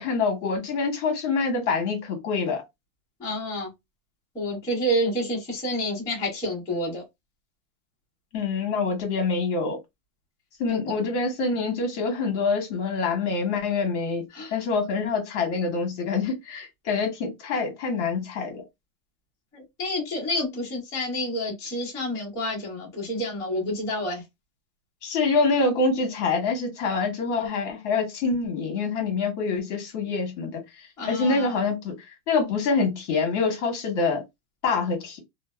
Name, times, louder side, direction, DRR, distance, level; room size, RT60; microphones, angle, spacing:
voice 1, 0.0-2.6 8.3-9.8 10.6-14.2 14.5-18.6 25.0-30.6 31.1-32.0 32.3-34.2 34.6-35.2, left 4 dB, 45° left, 1.1 m, -26 dB
voice 2, 3.2-3.7 4.3-7.0 10.7-11.0 14.3-14.5 19.5-24.2 31.0-31.6, equal, 5° left, 0.8 m, -29 dB
2.6 x 2.1 x 2.2 m
supercardioid pair, 170°, 49 cm